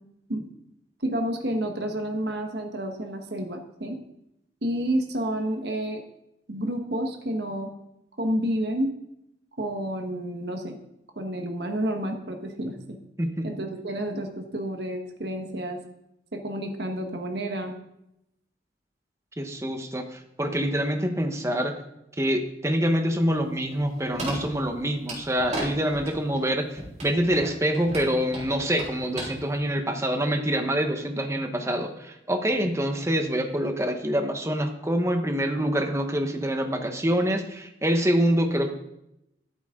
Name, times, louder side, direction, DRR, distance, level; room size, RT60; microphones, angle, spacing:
voice 1, 1.0-4.0 4.6-6.0 6.5-7.7 8.2-8.9 9.6-10.8 11.1-12.7 13.4-15.8 16.3-17.7, right 1 dB, 65° right, 4 dB, 1.4 m, -30 dB
voice 2, 19.4-21.7 22.2-38.7, equal, 15° right, 5 dB, 1.2 m, -26 dB
sound 1, 23.5-25.6 25.9-26.5 26.8-29.2 29.5-29.6, right 2 dB, 40° right, 4.1 m, -36 dB
13.5 x 8.3 x 3.8 m, 0.82 s
head